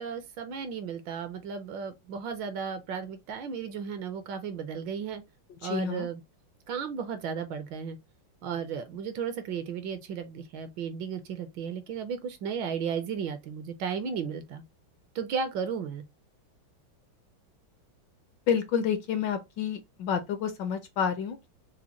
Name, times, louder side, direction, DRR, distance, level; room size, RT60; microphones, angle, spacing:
voice 1, 0.0-5.2 5.6-6.2 6.7-8.0 8.4-14.6 15.1-16.0, right 6 dB, 70° right, 1.2 m, -34 dB
voice 2, 5.6-6.1 18.5-21.5, left 7 dB, 70° left, 1.2 m, -29 dB
4.9 x 2.2 x 2.9 m
omnidirectional pair, 2.3 m